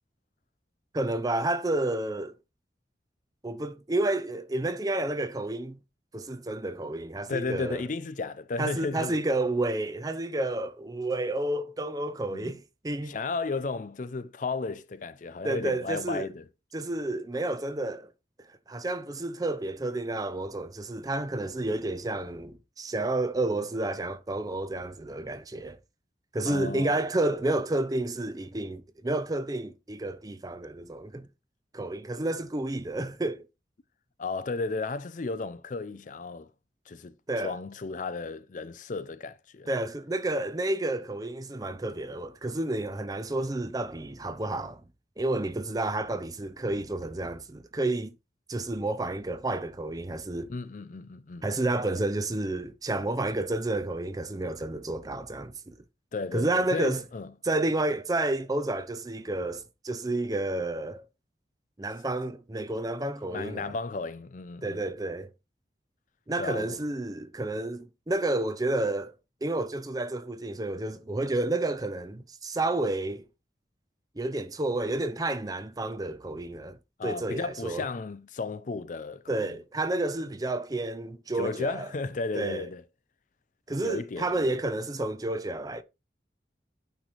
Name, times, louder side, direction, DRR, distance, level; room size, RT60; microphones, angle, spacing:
voice 1, 0.9-2.4 3.4-5.8 6.1-7.8 8.6-13.1 15.4-16.3 16.7-18.1 18.7-25.8 26.3-31.3 31.7-33.5 37.3-37.5 39.7-44.8 45.2-48.1 48.5-50.5 51.4-55.8 56.3-57.0 57.4-61.0 61.8-63.7 64.6-65.3 66.3-69.1 69.4-73.2 74.2-77.9 79.3-81.9 82.3-82.7 83.7-85.8, right 2 dB, 20° right, 0.5 m, -30 dB
voice 2, 7.3-9.2 12.3-12.5 13.1-16.4 26.4-27.0 34.2-36.5 36.9-37.1 37.4-39.7 50.5-51.4 56.1-57.3 63.2-64.8 66.4-66.8 77.0-79.6 81.4-82.8 83.8-84.5, left 3 dB, 45° left, 0.5 m, -34 dB
8.9 x 3.2 x 4.0 m
head